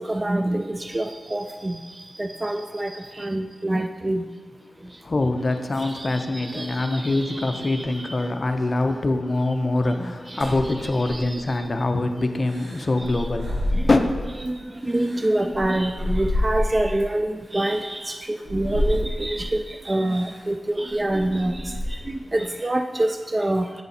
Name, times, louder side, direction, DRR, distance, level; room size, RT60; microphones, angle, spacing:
voice 1, 0.1-1.8 2.2-2.9 3.2-4.2 6.0-6.1 6.3-6.7 7.0-7.6 11.1-11.2 14.4-14.6 14.9-21.6 22.3-23.6, right 1 dB, 25° right, 6 dB, 0.3 m, -25 dB
voice 2, 5.0-14.0, left 2 dB, 40° left, 6 dB, 0.5 m, -24 dB
sound 1, 10.4-11.6 12.4-14.4 14.8-17.0 17.7-17.8 18.4-19.6 20.1-20.4 20.9-22.2, left 1 dB, 70° right, 1.5 m, -29 dB
8.8 x 4.0 x 4.1 m, 1.5 s
wide cardioid pair, 95°, 0 cm